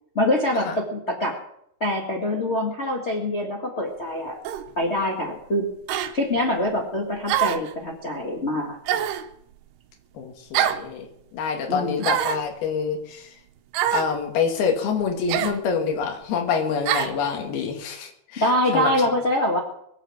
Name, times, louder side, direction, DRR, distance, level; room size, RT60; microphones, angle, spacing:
voice 1, 0.1-1.4 1.8-4.4 4.8-5.7 6.1-8.8 11.7-12.1 18.4-19.6, left 1 dB, 45° left, -1 dB, 0.8 m, -24 dB
sound 1, 4.5-4.7 5.9-6.1 7.3-7.7 8.9-9.3 10.5-10.9 12.0-12.5 13.7-14.1 15.3-15.6 16.9-17.2, right 11 dB, 80° right, 2.9 m, -24 dB
voice 2, 10.2-11.1 11.3-13.3 13.9-18.5 18.7-18.9, left 6 dB, 70° left, 2 dB, 3.8 m, -26 dB
22.5 x 7.6 x 7.2 m, 0.76 s
omnidirectional pair, 4.7 m